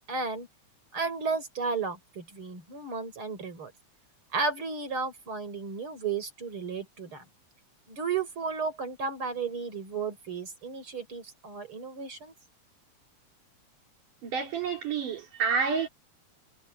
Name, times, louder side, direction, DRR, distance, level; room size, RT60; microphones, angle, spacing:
voice 1, 0.1-0.5 0.9-3.7 4.3-7.2 7.9-12.3, right 4 dB, 40° right, 6.2 m, -33 dB
voice 2, 14.2-15.9, right 6 dB, 80° right, 5.1 m, -29 dB
omnidirectional pair, 3.6 m